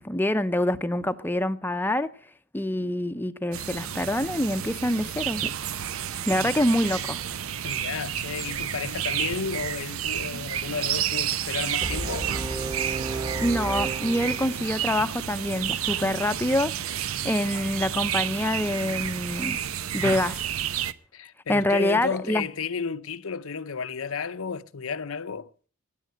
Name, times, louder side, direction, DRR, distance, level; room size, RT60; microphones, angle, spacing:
voice 1, 0.0-2.1 2.5-5.5 6.3-7.2 13.4-19.6 19.9-20.4 21.5-22.5, left 1 dB, 10° left, 0.7 m, -26 dB
sound 1, 3.5-20.9, right 9 dB, 85° right, 0.8 m, -31 dB
voice 2, 7.6-12.3 17.5-17.6 21.1-25.5, left 5 dB, 80° left, 0.7 m, -33 dB
Brass instrument, 11.8-14.9, right 2 dB, 20° right, 1.4 m, -33 dB
15.5 x 10.0 x 7.9 m
head